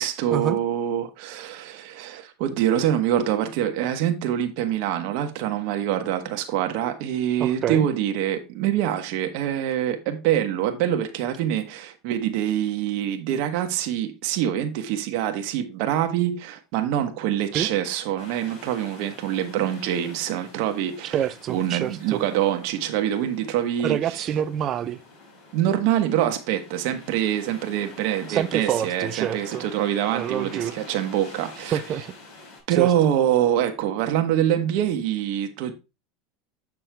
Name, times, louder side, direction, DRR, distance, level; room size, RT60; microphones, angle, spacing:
voice 1, 0.0-21.2 21.5-24.2 25.5-31.8 32.7-35.7, right 11 dB, 65° right, 1.2 m, -25 dB
voice 2, 7.4-7.9 17.5-17.7 21.1-22.2 23.8-25.0 28.3-29.6 30.1-30.7 31.7-32.1 32.8-32.9, right 10 dB, 40° right, 0.6 m, -26 dB
sound 1, 18.2-32.6, left 3 dB, 60° left, 5.1 m, -46 dB
7.5 x 6.0 x 3.4 m
supercardioid pair, 120°, 0 cm